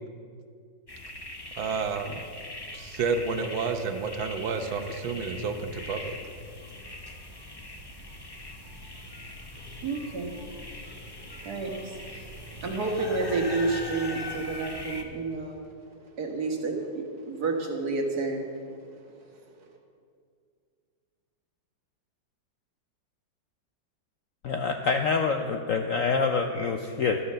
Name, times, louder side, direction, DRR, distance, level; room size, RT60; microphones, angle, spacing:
sound 1, 0.9-15.0, left 1 dB, 25° left, 0.5 m, -41 dB
voice 1, 1.6-2.2 2.7-6.1, right 5 dB, 90° right, 7 dB, 1.7 m, -30 dB
voice 2, 9.7-10.9 11.4-15.6 16.0-18.8 19.2-19.4, right 3 dB, 55° right, 2 dB, 2.0 m, -31 dB
voice 3, 24.4-27.2, left 5 dB, 70° left, 5 dB, 0.8 m, -26 dB
12.5 x 9.7 x 6.7 m, 2.2 s
omnidirectional pair, 2.1 m